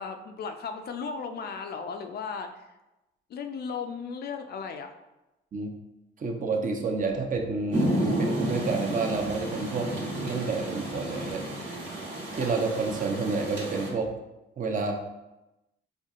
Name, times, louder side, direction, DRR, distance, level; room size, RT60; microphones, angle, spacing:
voice 1, 0.0-2.7 3.3-4.9, left 5 dB, 55° left, 6 dB, 0.4 m, -36 dB
voice 2, 6.2-9.9 10.2-11.4 12.3-14.1 14.6-14.9, right 4 dB, 40° right, 3 dB, 0.6 m, -29 dB
Rain, 7.7-13.9, right 1 dB, 65° right, 1.1 m, -31 dB
4.4 x 2.7 x 2.4 m, 0.97 s
cardioid pair, 90°, 20 cm